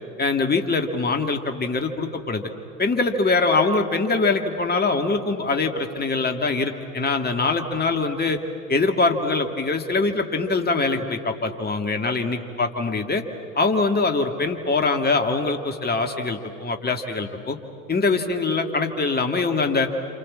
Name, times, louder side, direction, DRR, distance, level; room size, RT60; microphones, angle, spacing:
voice 1, 0.2-2.5 2.8-8.4 8.7-13.2 13.5-17.6 17.9-19.9, left 3 dB, 20° left, 5 dB, 2.2 m, -23 dB
27.5 x 27.5 x 7.5 m, 2.7 s
hypercardioid pair, 70°, 44 cm